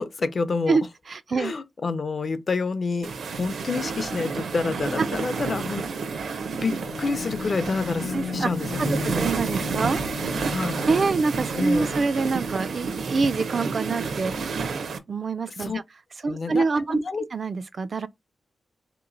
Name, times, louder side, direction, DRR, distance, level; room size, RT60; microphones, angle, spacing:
voice 1, 0.0-0.8 1.4-5.9 6.1-9.3 10.5-10.8 11.5-11.9 15.6-15.8 16.3-17.2, left 4 dB, 45° left, 0.5 m, -28 dB
voice 2, 0.7-1.5 5.0-5.1 8.0-8.5 8.8-10.0 10.9-14.3 15.1-15.8 16.2-17.0 17.3-18.1, right 4 dB, 45° right, 0.3 m, -25 dB
sound 1, 3.0-15.0, right 5 dB, 85° right, 0.7 m, -30 dB
sound 2, 6.5-11.2, left 6 dB, 85° left, 0.6 m, -36 dB
3.8 x 2.9 x 3.8 m
wide cardioid pair, 145°, 0 cm